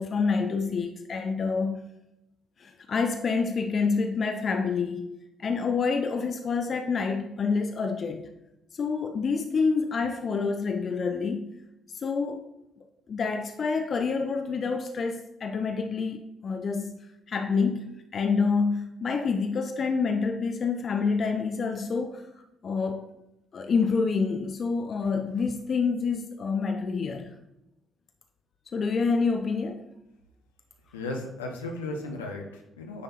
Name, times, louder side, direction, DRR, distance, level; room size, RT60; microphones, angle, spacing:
voice 1, 0.0-1.8 2.6-5.1 5.4-8.3 8.7-11.5 11.9-12.5 13.1-16.9 17.3-22.2 22.6-23.0 23.5-27.3 28.7-29.9, left 5 dB, 45° left, 5 dB, 0.5 m, -27 dB
voice 2, 30.9-33.0, left 2 dB, 80° left, 1 dB, 0.8 m, -35 dB
9.3 x 3.4 x 4.2 m, 0.89 s
figure-of-eight pair, 45°, 0 cm